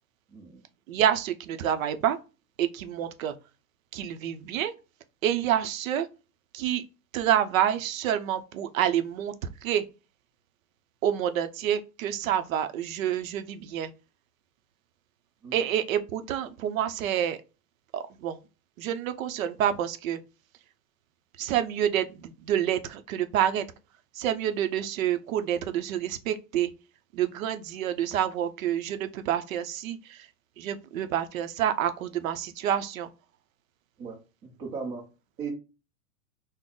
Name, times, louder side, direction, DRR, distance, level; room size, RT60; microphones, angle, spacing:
voice 1, 0.3-0.6 15.4-15.5 34.0-35.0 35.4-35.5, right 5 dB, 15° right, 0.4 m, -37 dB
voice 2, 0.9-2.2 2.6-3.3 3.9-4.7 5.2-6.1 6.5-6.9 7.1-9.3 9.6-9.8 11.0-13.9 15.5-17.4 17.9-18.4 18.8-20.2 21.4-23.6 24.1-26.7 27.1-30.3 30.6-33.1, right 10 dB, 65° right, 0.6 m, -28 dB
3.8 x 2.0 x 3.7 m
supercardioid pair, 155°, 44 cm